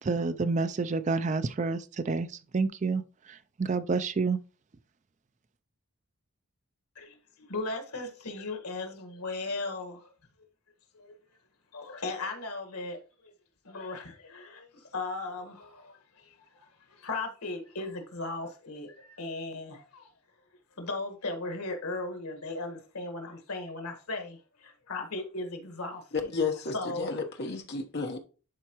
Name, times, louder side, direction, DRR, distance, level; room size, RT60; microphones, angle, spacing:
voice 1, 0.0-2.3 2.5-3.0 3.3-4.4, right 4 dB, 30° right, 0.4 m, -28 dB
voice 2, 7.5-10.0 11.0-11.1 11.7-13.0 13.6-14.6 14.9-15.9 17.0-20.0 20.8-24.4 24.6-26.0 26.7-27.1, left 2 dB, 85° left, 1.6 m, -36 dB
voice 3, 26.1-28.2, left 4 dB, 50° left, 1.1 m, -32 dB
11.5 x 4.4 x 3.0 m
head